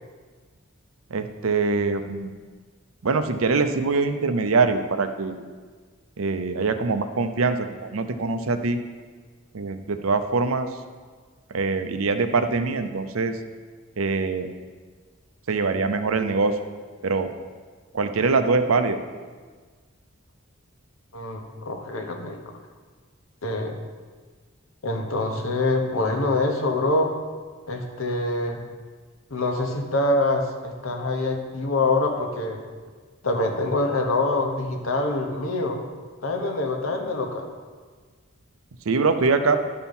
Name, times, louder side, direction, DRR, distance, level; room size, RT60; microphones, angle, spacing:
voice 1, 1.1-2.3 3.0-5.4 6.2-8.8 9.5-10.7 11.5-13.4 14.0-14.5 15.5-16.6 17.0-17.3 17.9-19.0 38.9-39.6, right 4 dB, 80° right, 8 dB, 0.6 m, -23 dB
voice 2, 21.1-22.4 23.4-23.8 24.8-27.1 27.7-28.6 29.3-32.6 33.2-35.8 36.2-37.5, left 2 dB, 75° left, 2 dB, 1.1 m, -25 dB
11.5 x 4.5 x 5.4 m, 1.5 s
head